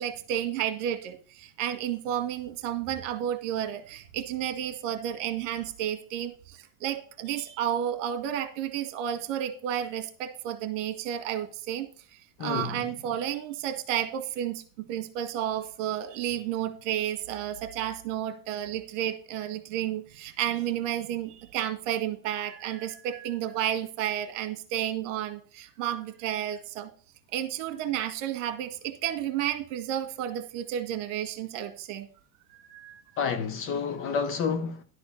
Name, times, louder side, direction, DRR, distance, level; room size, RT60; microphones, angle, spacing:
voice 1, 0.0-11.9 12.4-26.9 27.3-32.1 32.5-33.4, right 11 dB, 65° right, 1.7 m, -32 dB
voice 2, 12.4-12.8 33.2-34.8, left 6 dB, 30° left, 0.9 m, -29 dB
11.0 x 4.2 x 7.1 m
supercardioid pair, 145°, 40 cm